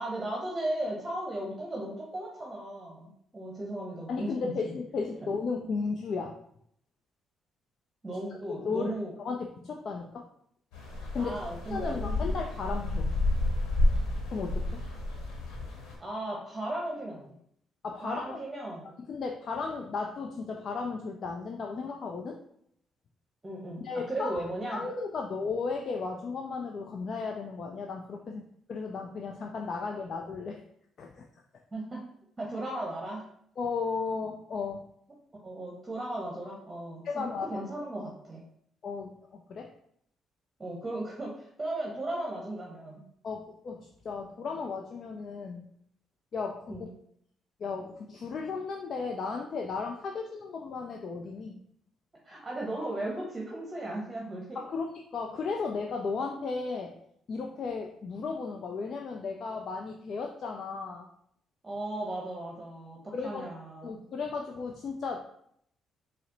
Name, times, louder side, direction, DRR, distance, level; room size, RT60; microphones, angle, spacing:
voice 1, 0.0-4.3 4.6-4.7 5.2-5.3 8.0-9.1 11.2-12.1 16.0-17.4 18.0-18.9 23.4-24.8 31.7-32.0 32.4-33.2 35.4-37.2 37.5-38.4 40.6-43.0 46.7-46.9 52.2-54.6 61.6-64.0, right 1 dB, 25° right, -2 dB, 0.9 m, -36 dB
voice 2, 4.1-6.3 8.6-8.9 9.2-10.3 11.1-11.4 11.7-13.1 14.3-14.8 17.8-18.4 19.0-22.4 23.8-24.4 24.7-28.4 28.7-30.6 31.0-31.2 33.6-34.8 37.0-37.6 38.8-39.7 43.2-45.7 46.3-46.8 47.6-51.6 54.5-56.9 57.3-61.1 63.1-65.2, left 4 dB, 55° left, 2 dB, 0.4 m, -35 dB
sound 1, 10.7-16.0, left 1 dB, 80° left, 0.9 m, -30 dB
4.1 x 2.0 x 3.9 m, 0.69 s
supercardioid pair, 60°, 0 cm